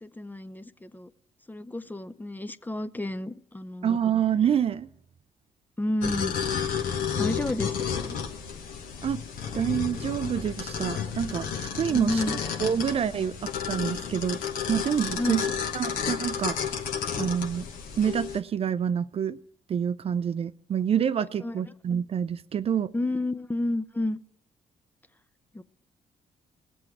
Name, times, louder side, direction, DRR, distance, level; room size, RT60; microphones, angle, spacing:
voice 1, 0.0-1.1 1.5-4.0 5.8-6.4 7.2-8.2 11.9-12.7 15.2-15.5 21.4-21.6 22.9-24.2 25.5-25.6, left 1 dB, 10° left, 14 dB, 0.5 m, -31 dB
voice 2, 3.8-4.9 9.0-9.2 9.5-12.2 12.6-13.4 13.7-14.4 14.7-15.5 15.7-16.6 17.1-17.7 18.0-19.4 19.7-22.9, right 8 dB, 45° right, 15 dB, 0.4 m, -27 dB
sound 1, 6.0-18.4, left 7 dB, 80° left, 1.0 m, -32 dB
19.5 x 7.7 x 4.7 m, 0.78 s
supercardioid pair, 55°, 14 cm